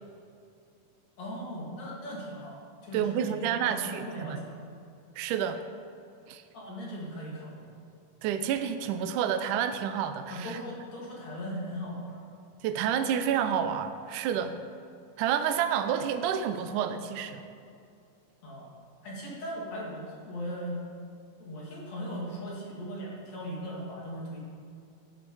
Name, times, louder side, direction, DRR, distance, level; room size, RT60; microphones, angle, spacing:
voice 1, 1.2-4.6 6.5-7.7 10.3-12.2 14.3-14.4 18.4-18.7 19.0-20.8 21.4-24.4, equal, 50° left, -4 dB, 3.4 m, -38 dB
voice 2, 2.9-4.4 5.2-5.6 6.3-6.4 8.2-10.6 12.6-14.6 15.2-17.5, right 8 dB, 80° right, 9 dB, 1.8 m, -29 dB
15.5 x 10.5 x 4.8 m, 2.5 s
omnidirectional pair, 4.4 m